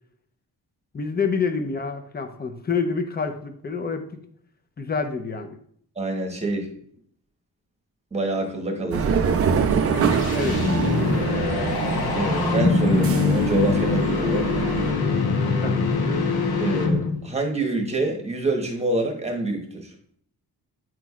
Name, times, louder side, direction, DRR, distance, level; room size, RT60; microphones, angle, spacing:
voice 1, 0.9-4.1 4.8-5.6 10.3-10.6 15.6-15.7, left 5 dB, 25° left, 7 dB, 0.6 m, -27 dB
voice 2, 6.0-6.7 8.1-9.1 9.7-9.8 12.1-14.5 16.6-19.9, right 2 dB, 15° right, 2 dB, 1.1 m, -26 dB
sound 1, 8.9-14.9, right 6 dB, 40° right, 0.5 m, -25 dB
sound 2, 9.6-17.3, left 4 dB, 70° left, 1.1 m, -23 dB
9.0 x 6.0 x 2.4 m, 0.62 s
wide cardioid pair, 180°, 39 cm